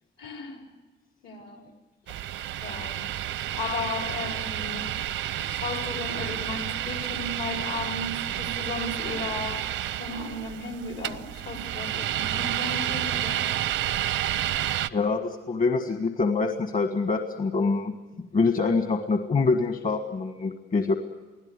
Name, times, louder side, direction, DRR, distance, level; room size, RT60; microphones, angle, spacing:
voice 1, 0.2-0.6 1.2-1.7 2.6-3.1 3.6-4.9 5.3-13.5, left 3 dB, 75° left, 2 dB, 5.0 m, -35 dB
sound 1, 2.1-14.9, right 12 dB, 90° right, 0.7 m, -30 dB
voice 2, 14.9-17.9 18.3-20.9, left 4 dB, 45° left, 5 dB, 1.6 m, -25 dB
24.5 x 16.0 x 9.8 m, 1.3 s
cardioid pair, 115°, 19 cm